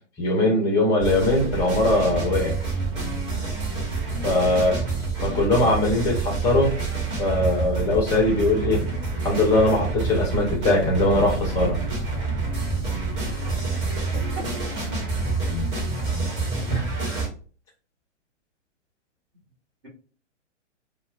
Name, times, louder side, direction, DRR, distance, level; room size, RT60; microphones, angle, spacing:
voice 1, 0.2-2.6 4.2-4.8 5.2-6.7 7.2-8.8 9.2-11.8 16.7-16.8, left 2 dB, 10° left, -1 dB, 0.4 m, -21 dB
sound 1, 1.0-17.3, right 3 dB, 30° right, 1.3 m, -27 dB
voice 2, 13.2-13.6 14.1-14.5, right 1 dB, 55° right, -2 dB, 1.5 m, -38 dB
4.1 x 2.1 x 2.4 m, 0.39 s
figure-of-eight pair, 115°, 36 cm